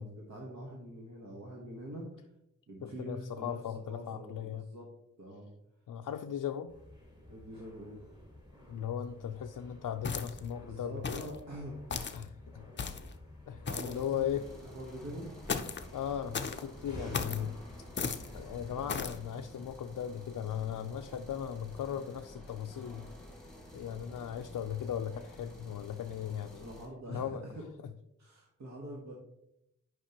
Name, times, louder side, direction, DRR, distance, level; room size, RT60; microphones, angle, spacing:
voice 1, 0.0-2.1 2.7-3.6 3.9-4.9 5.2-5.5 7.3-8.0 10.6-11.8 13.7-14.3 14.7-15.4 26.6-27.6 28.2-29.1, right 1 dB, 60° right, -2 dB, 1.3 m, -44 dB
voice 2, 2.8-4.6 5.9-6.7 8.7-11.2 12.1-12.6 13.5-14.4 15.9-17.6 18.3-23.1 23.7-26.7 27.1-27.4, left 9 dB, 90° left, 4 dB, 0.5 m, -37 dB
sound 1, 6.7-19.3, left 1 dB, 15° right, 2.0 m, -52 dB
sound 2, 10.0-10.5 11.0-11.4 11.9-12.2 12.8-13.1 13.7-14.0 15.5-15.9 16.3-16.6 17.1-17.4 18.0-18.3 18.9-19.2, left 5 dB, 35° left, 0.5 m, -35 dB
sound 3, 13.9-26.9, left 1 dB, ahead, 1.6 m, -51 dB
10.0 x 5.3 x 2.9 m, 0.80 s
wide cardioid pair, 170°, 31 cm